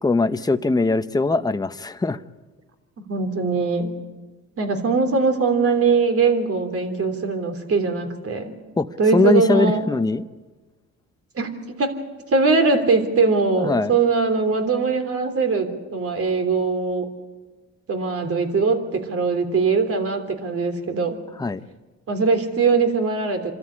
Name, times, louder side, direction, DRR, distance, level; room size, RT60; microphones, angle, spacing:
voice 1, 0.0-2.2 8.8-10.2 13.6-13.9 21.4-21.6, left 3 dB, 15° left, 10 dB, 0.8 m, -21 dB
voice 2, 3.0-3.9 4.6-8.5 9.0-9.8 11.3-11.9 12.3-17.1 17.9-21.2 22.1-23.5, right 4 dB, 50° right, 6 dB, 3.2 m, -21 dB
27.5 x 13.5 x 9.9 m, 1.3 s
cardioid pair, 90°, 30 cm